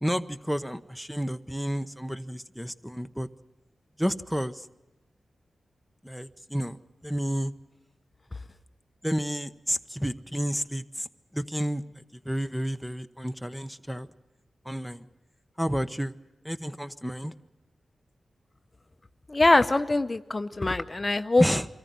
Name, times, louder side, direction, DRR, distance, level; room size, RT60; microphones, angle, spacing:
voice 1, 0.0-3.3 4.0-4.7 6.0-6.8 7.0-7.5 9.0-11.1 11.3-14.1 14.6-15.1 15.6-16.1 16.4-17.3 21.4-21.7, equal, ahead, 10 dB, 1.0 m, -30 dB
voice 2, 19.3-21.4, left 2 dB, 35° left, 10 dB, 0.8 m, -23 dB
24.0 x 14.5 x 9.4 m, 1.0 s
cardioid pair, 60°, 0 cm